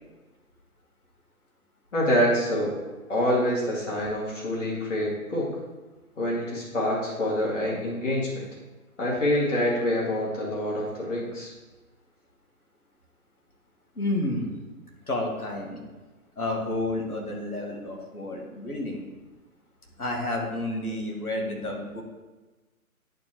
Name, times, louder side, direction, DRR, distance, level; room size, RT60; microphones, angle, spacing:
voice 1, 1.9-2.8 3.1-5.5 6.2-8.4 9.0-11.5, left 1 dB, 55° left, -6 dB, 2.3 m, -26 dB
voice 2, 14.0-14.5 15.1-15.8 16.4-19.0 20.0-22.0, left 1 dB, 80° left, -1 dB, 1.9 m, -30 dB
10.5 x 4.8 x 3.0 m, 1.2 s
figure-of-eight pair, 145°, 44 cm